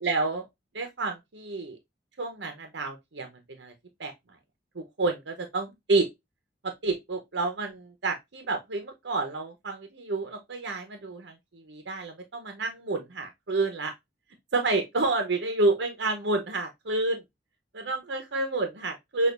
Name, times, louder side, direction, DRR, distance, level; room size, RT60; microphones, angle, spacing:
voice 1, 0.0-0.4 0.7-1.8 2.2-3.7 4.0-4.1 4.7-6.1 6.6-13.9 14.5-17.2 17.7-19.3, right 3 dB, 85° right, 0.8 m, -29 dB
6.2 x 2.4 x 2.4 m
head